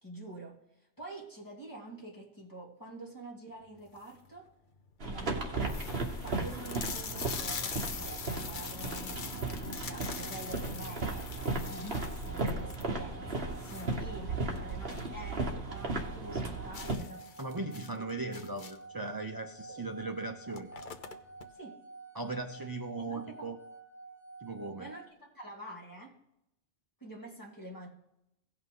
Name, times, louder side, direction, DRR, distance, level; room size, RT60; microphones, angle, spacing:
voice 1, 0.0-4.5 5.1-5.8 6.2-17.3 17.9-18.1 19.7-19.9 21.5-21.8 23.0-23.5 24.8-26.2 27.0-27.9, right 1 dB, 15° left, -3 dB, 2.6 m, -47 dB
sound 1, 3.8-4.3 4.9-5.0 5.2-5.3 5.6-15.2 15.5-15.6 16.0-16.1 16.7-19.0 19.9-20.0 20.3-21.5, left 6 dB, 50° left, 0.8 m, -43 dB
sound 2, 5.0-16.9, right 3 dB, 55° right, 1.7 m, -36 dB
sound 3, 7.9-25.1, right 3 dB, 70° left, 2.4 m, -50 dB
voice 2, 17.4-20.7 22.1-23.6 24.4-24.9, right 3 dB, 25° right, 4 dB, 0.5 m, -38 dB
17.0 x 5.8 x 3.8 m, 0.83 s
omnidirectional pair, 1.2 m